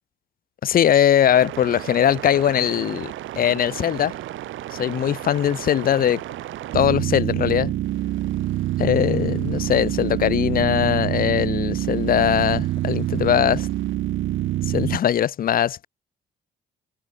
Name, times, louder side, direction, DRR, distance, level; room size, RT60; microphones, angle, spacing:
voice 1, 0.6-4.1 4.7-6.2 6.7-7.7 8.8-13.7 14.7-15.9, left 10 dB, 50° left, 0.5 m, -20 dB
sound 1, 1.3-15.0, right 14 dB, 80° right, 1.4 m, -27 dB
cardioid pair, 90°, 20 cm